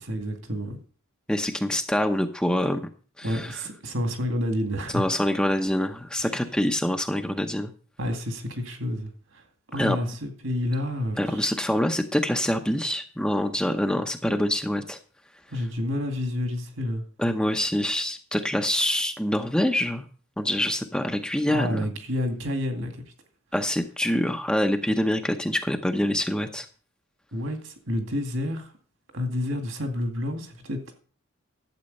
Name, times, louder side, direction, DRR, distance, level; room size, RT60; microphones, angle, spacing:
voice 1, 0.0-0.8 3.2-5.1 6.2-6.3 8.0-9.4 9.7-11.4 15.5-17.0 21.5-22.9 27.3-28.7 29.1-30.9, left 1 dB, 65° right, 2.2 m, -29 dB
voice 2, 1.3-2.9 3.2-3.6 4.9-7.7 9.8-10.0 11.2-15.0 17.2-20.0 20.4-21.9 23.5-26.7, left 1 dB, 5° left, 0.7 m, -25 dB
12.0 x 8.1 x 5.3 m
head